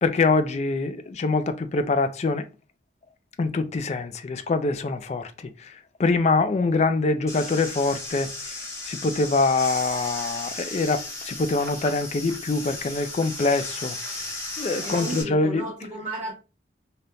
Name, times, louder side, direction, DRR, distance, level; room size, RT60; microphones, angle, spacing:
voice 1, 0.0-2.5 3.4-5.3 5.6-5.7 6.0-8.6 8.9-14.0 14.6-15.7, left 3 dB, 40° left, 0.3 m, -24 dB
sound 1, 7.3-15.2, left 2 dB, 15° left, 0.9 m, -35 dB
voice 2, 14.8-16.3, right 1 dB, 25° right, 1.1 m, -33 dB
3.4 x 2.8 x 2.6 m
head